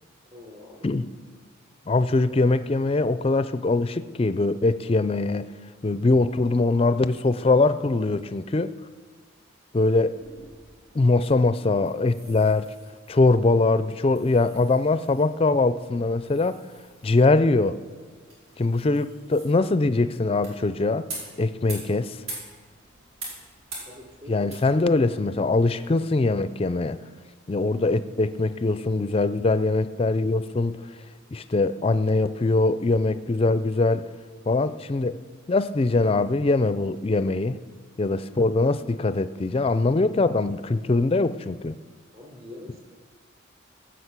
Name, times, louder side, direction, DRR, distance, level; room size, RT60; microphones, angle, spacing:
voice 1, 0.3-0.9 23.8-24.4 42.1-42.8, left 2 dB, 30° right, 0 dB, 3.4 m, -44 dB
voice 2, 1.9-5.5 5.8-8.7 9.7-10.2 10.9-12.7 13.1-16.6 17.0-17.8 18.6-21.1 21.4-22.2 24.3-27.0 27.5-30.8 31.3-34.1 34.5-35.2 35.5-37.6 38.0-41.7, left 3 dB, 30° left, 13 dB, 0.4 m, -22 dB
sound 1, 10.0-26.9, right 2 dB, 80° right, 5.3 m, -45 dB
17.0 x 6.3 x 8.1 m, 1.5 s
head